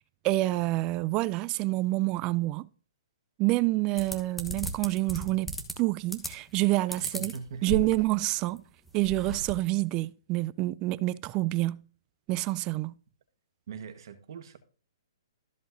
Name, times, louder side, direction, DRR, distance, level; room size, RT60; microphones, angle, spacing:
voice 1, 0.2-2.7 3.4-5.5 5.8-7.3 7.6-8.6 8.9-11.8 12.3-12.9, right 19 dB, 30° right, 0.3 m, -27 dB
sound 1, 4.0-5.7 6.1-6.6 6.9-8.2 8.6-8.7 8.9-9.5, right 1 dB, 5° left, 1.2 m, -36 dB
voice 2, 7.0-7.9 13.7-14.6, right 5 dB, 60° right, 1.5 m, -42 dB
13.5 x 7.6 x 2.7 m
hypercardioid pair, 140°, 3 cm